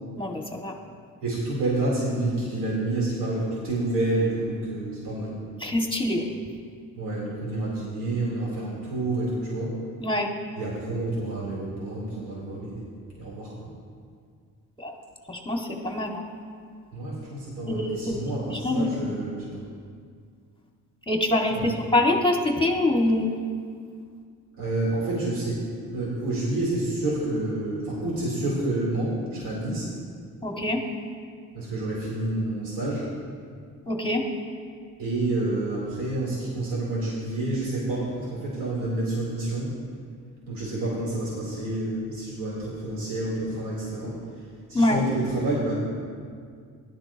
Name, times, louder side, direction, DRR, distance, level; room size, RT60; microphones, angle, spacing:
voice 1, 0.2-0.7 5.6-6.3 10.0-10.3 14.8-14.9 15.3-16.2 17.7-18.2 18.5-18.9 21.1-23.3 30.4-30.8 33.9-34.3 44.7-45.0, left 1 dB, 10° left, 0 dB, 2.1 m, -24 dB
voice 2, 1.2-5.3 7.0-9.8 10.6-12.9 13.1-13.7 16.9-19.5 21.6-21.9 24.6-29.9 31.5-33.1 35.0-39.7 40.5-44.1 44.7-45.7, right 2 dB, 80° right, -5 dB, 3.7 m, -29 dB
17.0 x 12.5 x 3.0 m, 2.1 s
supercardioid pair, 60°, 41 cm